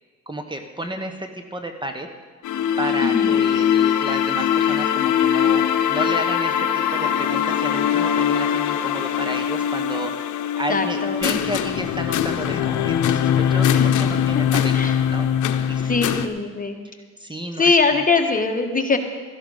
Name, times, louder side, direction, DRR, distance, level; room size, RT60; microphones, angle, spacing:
voice 1, 0.3-2.1 2.8-14.7 15.1-16.1 17.2-18.0, right 1 dB, 15° right, 6 dB, 1.1 m, -32 dB
sound 1, 2.4-16.3, left 9 dB, 75° left, 0.8 m, -21 dB
voice 2, 3.0-3.3 10.7-11.2 13.7-13.9 14.7-15.0 15.8-16.8 17.6-19.0, left 4 dB, 25° left, 5 dB, 1.3 m, -21 dB
13.5 x 11.5 x 5.5 m, 1.5 s
cardioid pair, 90°, 30 cm